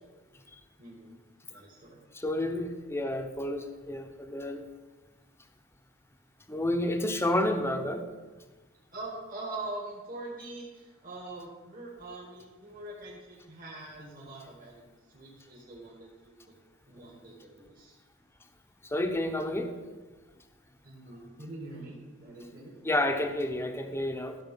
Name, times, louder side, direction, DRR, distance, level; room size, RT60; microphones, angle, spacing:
voice 1, 0.8-1.2 1.5-2.0 8.9-16.5 16.9-18.0 20.8-22.8, right 2 dB, 45° right, -4 dB, 2.2 m, -43 dB
voice 2, 2.1-4.7 6.5-8.0 18.8-19.7 22.8-24.4, left 1 dB, 15° left, 6 dB, 0.9 m, -30 dB
14.5 x 6.8 x 5.5 m, 1.3 s
head